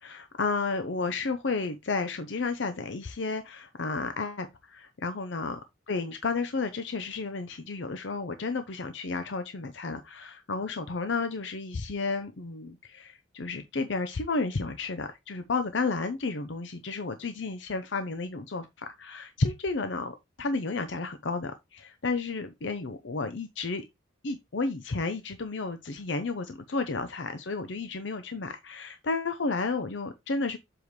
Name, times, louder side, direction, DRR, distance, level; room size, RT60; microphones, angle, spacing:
voice 1, 0.0-5.6 5.9-23.8 24.2-30.6, left 3 dB, 65° left, 0.7 m, -32 dB
7.2 x 4.9 x 3.1 m
head